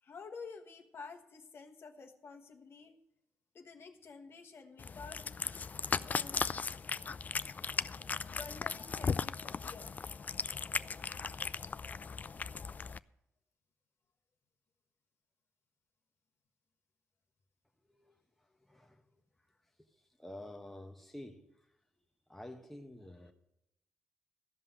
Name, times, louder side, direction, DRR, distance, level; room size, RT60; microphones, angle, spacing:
voice 1, 0.0-3.0 3.5-5.2 5.6-6.5 8.2-9.9, left 5 dB, 55° left, 1.3 m, -50 dB
Cat, 4.8-13.0, left 5 dB, 35° left, 0.3 m, -37 dB
voice 2, 18.7-19.0 20.2-21.4 22.3-23.3, left 1 dB, 5° left, 1.1 m, -48 dB
14.0 x 5.4 x 7.9 m
cardioid pair, 85°, 5 cm